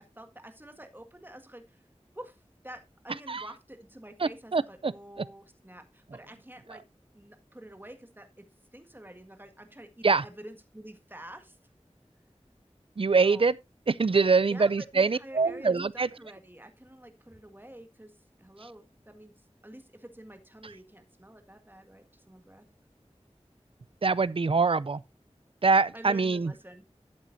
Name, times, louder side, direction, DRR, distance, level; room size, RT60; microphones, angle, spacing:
voice 1, 0.0-1.8 2.1-2.4 2.6-6.8 7.1-8.4 8.7-11.6 13.2-13.4 14.4-18.1 18.4-19.3 19.6-22.6 25.9-26.8, right 1 dB, 15° right, 1.7 m, -48 dB
voice 2, 4.2-4.9 10.0-10.2 13.0-13.5 13.9-16.1 24.0-25.0 25.6-26.5, right 4 dB, 50° right, 0.4 m, -24 dB
12.5 x 8.3 x 2.6 m
wide cardioid pair, 40°, 12 cm